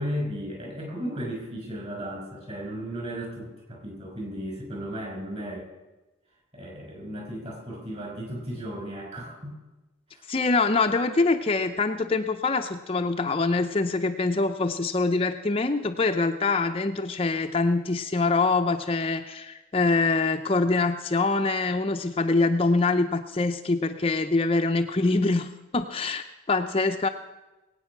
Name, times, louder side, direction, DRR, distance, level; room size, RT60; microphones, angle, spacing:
voice 1, 0.0-5.7 6.5-9.6 10.1-10.3, equal, 30° right, 1 dB, 5.3 m, -35 dB
voice 2, 10.3-27.1, left 3 dB, 30° left, 5 dB, 0.6 m, -24 dB
21.0 x 9.0 x 6.0 m, 1.1 s
head